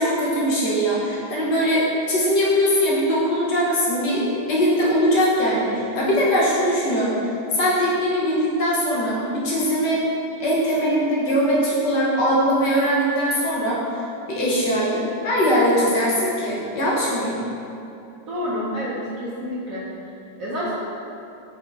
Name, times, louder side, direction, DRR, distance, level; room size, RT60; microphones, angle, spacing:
voice 1, 0.0-10.0 10.4-17.4, equal, 65° left, -6 dB, 1.2 m, -21 dB
voice 2, 18.3-19.9 20.4-20.7, equal, 80° right, -8 dB, 0.7 m, -28 dB
5.2 x 4.0 x 2.3 m, 2.8 s
omnidirectional pair, 2.2 m